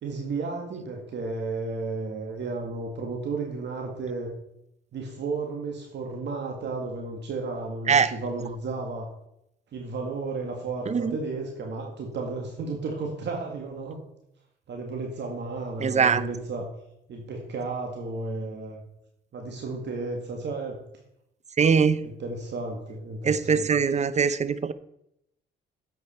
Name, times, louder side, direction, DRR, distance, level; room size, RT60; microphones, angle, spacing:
voice 1, 0.0-4.3 4.9-9.1 9.7-14.0 14.7-16.7 17.1-18.8 19.3-20.8 22.0-23.7, right 3 dB, 60° right, 1.9 m, -33 dB
voice 2, 15.8-16.2 21.6-22.0 23.2-24.7, right 6 dB, 35° right, 0.7 m, -22 dB
11.0 x 8.0 x 4.4 m
cardioid pair, 90°, 20 cm